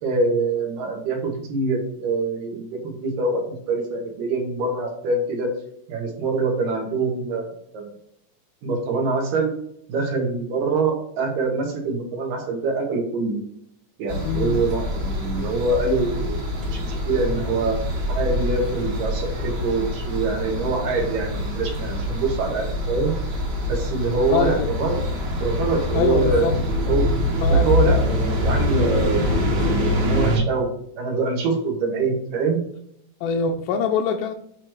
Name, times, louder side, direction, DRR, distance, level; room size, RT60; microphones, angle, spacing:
voice 1, 0.0-5.5 5.9-7.5 7.7-7.9 8.6-9.5 9.9-13.4 14.0-17.8 18.1-23.1 23.7-25.0 25.4-26.5 26.8-27.0 27.5-30.7 31.0-32.6, right 3 dB, 85° right, 1 dB, 3.4 m, -24 dB
sound 1, 14.1-30.4, left 1 dB, 45° right, 1.4 m, -24 dB
voice 2, 14.2-14.6 24.3-24.7 25.9-26.6 27.4-27.8 33.2-34.3, left 5 dB, 80° left, 3 dB, 2.2 m, -23 dB
8.5 x 3.3 x 4.6 m, 0.69 s
omnidirectional pair, 3.8 m